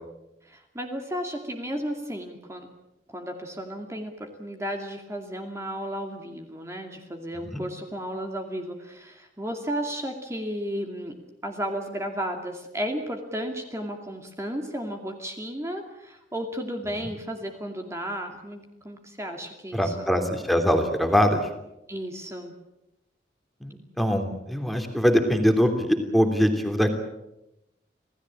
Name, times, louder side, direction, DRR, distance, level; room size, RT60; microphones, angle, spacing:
voice 1, 0.4-2.7 3.1-11.2 11.4-20.1 21.9-22.5, equal, 15° right, 3 dB, 2.4 m, -33 dB
voice 2, 19.7-21.4 23.6-27.0, equal, ahead, 6 dB, 3.0 m, -23 dB
27.5 x 17.5 x 8.8 m, 0.89 s
head